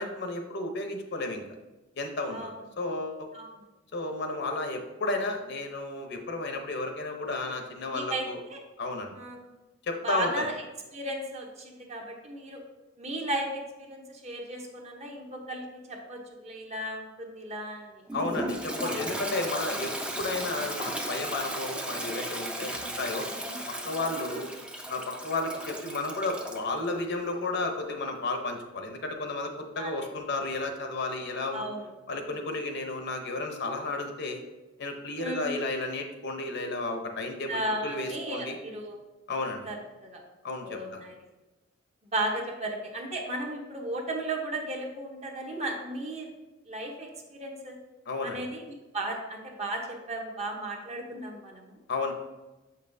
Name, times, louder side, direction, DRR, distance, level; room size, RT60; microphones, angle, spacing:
voice 1, 0.0-1.4 1.9-3.3 3.9-8.4 8.8-9.1 9.8-10.5 18.1-19.9 20.2-23.3 23.8-24.5 24.9-31.7 32.1-34.4 34.8-38.6 39.3-39.7 40.4-41.0 48.1-48.4 51.9-52.1, left 2 dB, 55° left, 4 dB, 0.7 m, -33 dB
voice 2, 7.9-8.2 8.5-8.6 9.2-9.5 10.0-10.5 10.9-12.6 13.0-18.0 18.8-19.3 23.4-23.6 24.3-24.4 29.8-29.9 31.5-31.8 35.2-35.6 37.5-39.0 39.7-39.8 40.0-40.2 40.6-41.2 42.1-46.3 46.7-47.8 48.2-48.6 48.9-51.8, right 1 dB, 35° right, 1 dB, 0.9 m, -35 dB
Toilet flush, 18.1-26.7, right 1 dB, 5° right, 0.5 m, -35 dB
6.9 x 5.5 x 2.6 m, 1.1 s
head